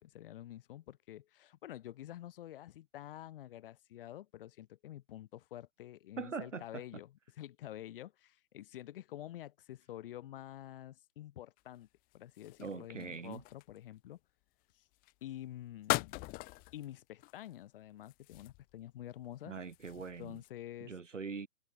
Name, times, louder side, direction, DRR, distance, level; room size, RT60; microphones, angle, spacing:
voice 1, 0.0-11.9 12.1-14.2 14.7-14.8 15.2-16.3 16.7-19.6 20.2-20.9, left 13 dB, 45° left, 4.5 m, -48 dB
voice 2, 6.2-6.8 12.6-13.4 19.4-20.4 20.8-21.5, right 5 dB, 75° right, 5.1 m, -42 dB
sound 1, 11.6-14.0 14.9-15.2 15.8-16.9 17.2-17.5 18.0-18.8 19.2-20.5, left 24 dB, 25° left, 1.4 m, -40 dB
figure-of-eight pair, 125°, 37 cm